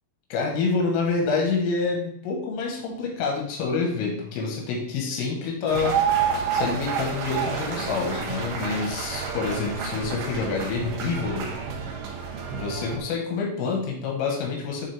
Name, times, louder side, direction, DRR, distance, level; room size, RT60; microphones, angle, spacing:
voice 1, 0.3-6.0 6.5-11.5 12.5-14.9, left 4 dB, 85° left, -1 dB, 4.0 m, -27 dB
sound 1, 5.7-13.0, right 6 dB, 85° right, 2.2 m, -29 dB
9.7 x 3.9 x 3.4 m, 0.67 s
omnidirectional pair, 5.7 m